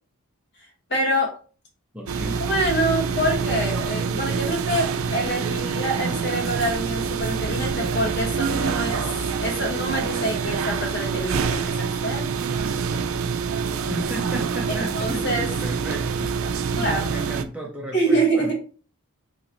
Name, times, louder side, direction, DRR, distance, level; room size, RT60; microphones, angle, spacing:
voice 1, 0.9-1.3 2.3-9.0 9.4-12.3 15.0-15.4 16.7-17.1 17.9-18.5, right 1 dB, 50° left, 1 dB, 1.3 m, -26 dB
voice 2, 1.9-2.5 13.9-16.3 16.7-18.5, equal, 5° right, 0 dB, 0.4 m, -34 dB
sound 1, 2.1-17.4, right 5 dB, 70° right, 0.4 m, -26 dB
2.9 x 2.8 x 4.1 m, 0.38 s
head